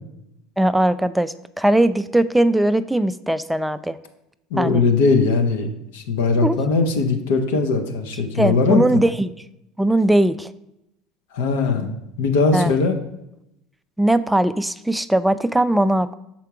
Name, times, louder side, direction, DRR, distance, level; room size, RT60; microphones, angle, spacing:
voice 1, 0.6-4.0 4.6-4.8 6.4-6.6 8.4-9.3 9.8-10.5 12.5-12.7 14.0-16.1, right 1 dB, 5° right, 13 dB, 0.3 m, -19 dB
voice 2, 4.5-5.7 5.9-8.8 11.3-12.9, left 4 dB, 80° left, 5 dB, 0.9 m, -20 dB
5.8 x 4.4 x 4.7 m, 0.85 s
hypercardioid pair, 80°, 0 cm